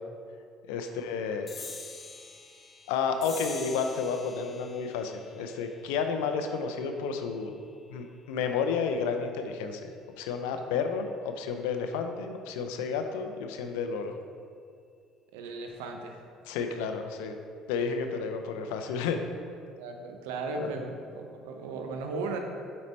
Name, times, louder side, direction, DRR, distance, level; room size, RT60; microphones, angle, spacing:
voice 1, 0.7-1.5 2.9-7.6 7.9-9.9 10.2-14.1 16.5-17.4 17.7-19.2 20.6-20.7, left 5 dB, 85° left, 6 dB, 0.5 m, -31 dB
sound 1, 1.5-8.3, left 4 dB, 35° left, 0.6 m, -46 dB
voice 2, 15.3-16.2 19.8-22.4, right 3 dB, 85° right, 4 dB, 0.6 m, -36 dB
5.2 x 4.2 x 4.2 m, 2.3 s
supercardioid pair, 80°, 0 cm